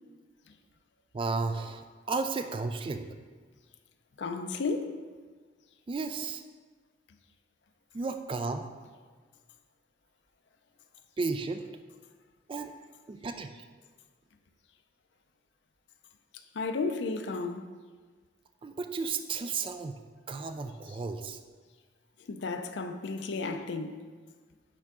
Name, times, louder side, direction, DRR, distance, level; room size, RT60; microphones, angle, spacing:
voice 1, 1.1-3.1 5.9-6.4 7.9-8.6 11.2-11.6 12.5-12.7 13.1-13.6 18.6-19.9 20.3-21.4, right 4 dB, 25° right, 0.3 m, -33 dB
voice 2, 4.2-5.0 16.5-17.6 22.3-24.0, left 4 dB, 65° left, 0.5 m, -33 dB
9.9 x 3.6 x 3.6 m
head